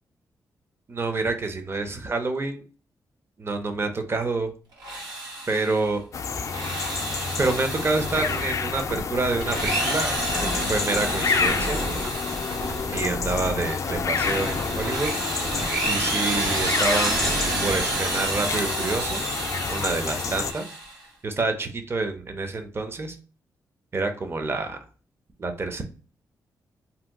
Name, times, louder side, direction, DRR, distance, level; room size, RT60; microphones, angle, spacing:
voice 1, 0.9-2.6 3.4-4.5 5.5-6.0 7.4-10.1 10.4-11.8 12.9-15.1 15.9-19.2 19.7-20.7 21.2-23.2 23.9-24.8 25.4-25.8, right 3 dB, 35° right, 6 dB, 0.6 m, -27 dB
Drill, 4.7-5.9 6.4-8.8 9.3-13.0 13.5-21.0, right 2 dB, 80° right, 1.2 m, -30 dB
sound 1, 6.1-20.5, left 5 dB, 50° left, 0.3 m, -29 dB
sound 2, 8.0-9.7 10.1-15.1 15.4-16.0 16.3-16.6 17.0-18.4, right 1 dB, 60° right, 1.0 m, -35 dB
2.8 x 2.2 x 3.5 m, 0.38 s
cardioid pair, 80°, 7 cm